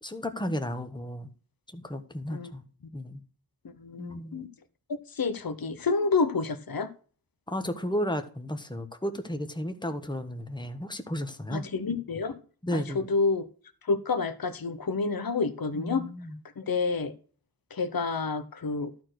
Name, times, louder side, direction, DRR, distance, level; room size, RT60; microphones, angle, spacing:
voice 1, 0.0-1.3 1.7-2.7 2.9-3.2 4.0-4.4 7.5-11.7 12.6-13.1 15.7-16.4, equal, 10° left, 1.3 m, -33 dB
voice 2, 3.8-4.5 5.1-6.9 11.5-12.4 12.7-13.4 13.9-16.0 16.6-17.1 17.7-18.9, left 4 dB, 60° left, 1.0 m, -29 dB
12.5 x 4.4 x 6.3 m
wide cardioid pair, 50°, 40 cm